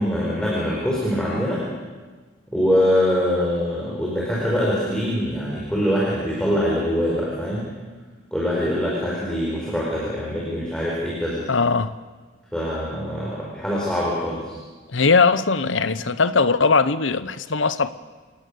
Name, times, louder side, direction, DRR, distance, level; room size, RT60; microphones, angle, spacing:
voice 1, 0.0-1.6 2.5-7.7 8.3-11.5 12.5-14.6, equal, 5° left, 4.7 m, -23 dB
voice 2, 11.5-11.9 14.9-17.9, left 4 dB, 80° left, 1.0 m, -19 dB
28.0 x 18.5 x 7.0 m
head